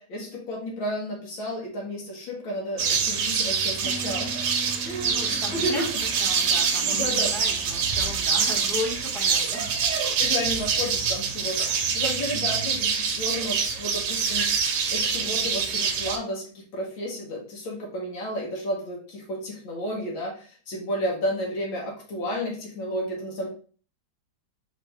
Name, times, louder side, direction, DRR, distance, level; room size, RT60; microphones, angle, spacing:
voice 1, 0.0-4.3 4.8-5.8 6.8-7.3 10.2-23.5, equal, 75° left, -1 dB, 1.8 m, -32 dB
sound 1, 2.8-16.2, right 6 dB, 70° right, 1.1 m, -25 dB
Piano, 3.8-9.4, right 2 dB, 85° right, 1.4 m, -44 dB
voice 2, 5.0-9.7, left 2 dB, ahead, -3 dB, 0.6 m, -36 dB
4.3 x 3.3 x 3.3 m, 0.42 s
omnidirectional pair, 2.2 m